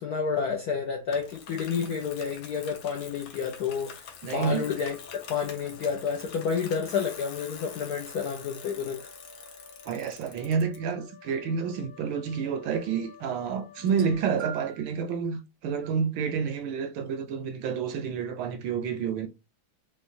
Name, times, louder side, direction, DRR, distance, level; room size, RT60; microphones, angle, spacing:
voice 1, 0.0-9.0, left 6 dB, 75° left, 0.9 m, -30 dB
Bicycle, 1.1-10.8, left 7 dB, 90° left, 1.6 m, -46 dB
voice 2, 4.2-4.7 9.9-19.3, right 6 dB, 75° right, 1.3 m, -29 dB
sound 1, 4.5-14.3, left 3 dB, 50° left, 1.4 m, -51 dB
sound 2, 13.8-14.9 15.8-16.0 17.1-17.2, right 10 dB, 55° right, 0.8 m, -43 dB
4.4 x 2.2 x 2.5 m
omnidirectional pair, 2.3 m